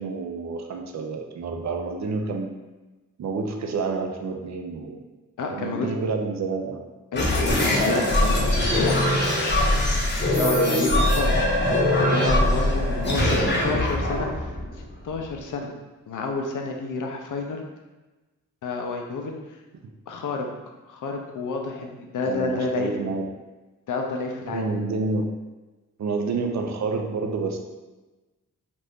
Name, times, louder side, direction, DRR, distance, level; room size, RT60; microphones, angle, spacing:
voice 1, 0.0-2.5 3.2-5.0 5.5-6.8 13.2-13.9 19.8-19.9 22.2-23.3 24.5-25.3 26.0-27.6, right 4 dB, 55° right, 3 dB, 0.5 m, -29 dB
voice 2, 5.4-5.9 7.1-9.6 10.4-11.3 12.0-13.4 13.6-15.7 16.1-17.6 18.6-19.3 20.1-20.5 20.9-22.9 23.9-24.7, left 3 dB, 65° left, 2 dB, 0.6 m, -30 dB
sound 1, 7.1-15.4, left 1 dB, 35° left, 0.8 m, -22 dB
2.7 x 2.5 x 3.4 m, 1.1 s
cardioid pair, 70°, 33 cm